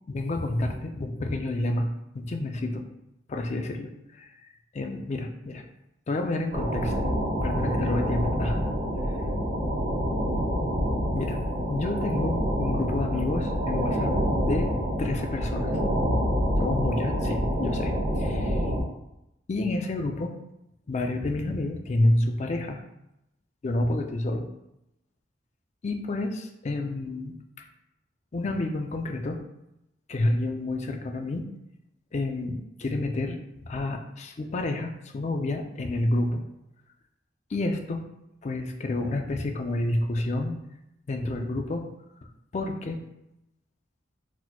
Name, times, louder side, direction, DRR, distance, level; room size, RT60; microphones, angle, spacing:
voice 1, 0.1-2.8 3.3-4.3 4.7-5.6 6.1-6.9 7.4-8.6 9.0-9.1 11.1-14.1 14.4-14.7 15.0-15.8 16.6-18.7 19.5-20.3 20.9-22.8 23.6-24.5 25.8-27.6 28.3-29.4 30.1-31.5 32.1-36.4 37.5-38.0 38.4-40.6 41.1-41.9 42.5-43.0, left 2 dB, 35° left, 4 dB, 0.4 m, -29 dB
sound 1, 6.5-18.8, equal, 50° right, 1.0 m, -27 dB
4.0 x 2.9 x 2.2 m, 0.86 s
head